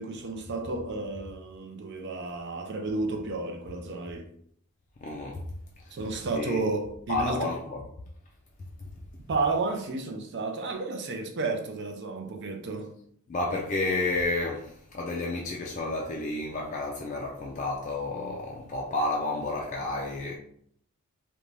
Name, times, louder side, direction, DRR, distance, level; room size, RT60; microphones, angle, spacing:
voice 1, 0.0-4.3 5.9-7.5 9.3-12.9, right 3 dB, 55° right, 0.5 m, -32 dB
voice 2, 5.0-5.4 5.8-5.9 6.3-6.6 7.1-7.8 8.8-8.9 13.3-20.4, left 2 dB, 35° left, 0.3 m, -31 dB
2.5 x 2.2 x 3.1 m
head